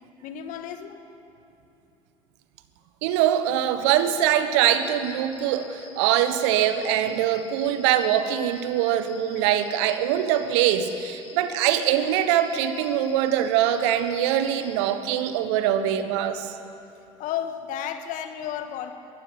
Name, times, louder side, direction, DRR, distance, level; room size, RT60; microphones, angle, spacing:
voice 1, 0.2-1.0 17.2-18.9, left 10 dB, 60° left, 8 dB, 1.7 m, -32 dB
voice 2, 3.0-16.5, right 10 dB, 70° right, 10 dB, 1.3 m, -23 dB
sound 1, 4.8-11.4 11.8-14.9, left 5 dB, 80° left, 6.0 m, -48 dB
22.5 x 15.0 x 8.7 m, 2.9 s
hypercardioid pair, 65°, 15 cm